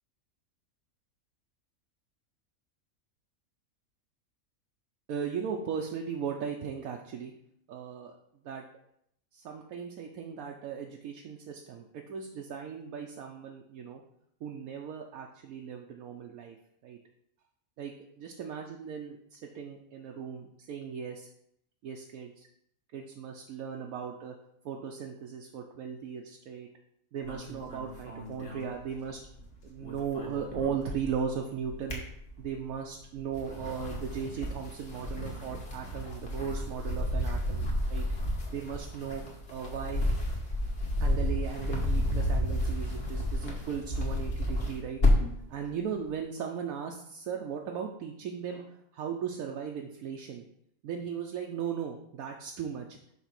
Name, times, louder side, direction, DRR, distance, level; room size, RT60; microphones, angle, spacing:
voice 1, 5.1-7.3 7.7-8.1 8.4-8.6 9.3-14.0 14.4-16.6 16.8-17.0 17.8-21.3 21.8-22.5 22.9-24.3 24.6-26.7 27.1-29.2 29.6-32.0 32.4-38.1 38.5-40.0 41.0-45.0 45.5-50.4 50.8-53.0, right 7 dB, 80° right, 1 dB, 1.1 m, -37 dB
sound 1, 27.2-29.4 29.7-31.3 31.6-32.7 33.2-45.4, left 1 dB, 45° left, 1.5 m, -31 dB
5.9 x 3.8 x 5.8 m, 0.74 s
omnidirectional pair, 1.5 m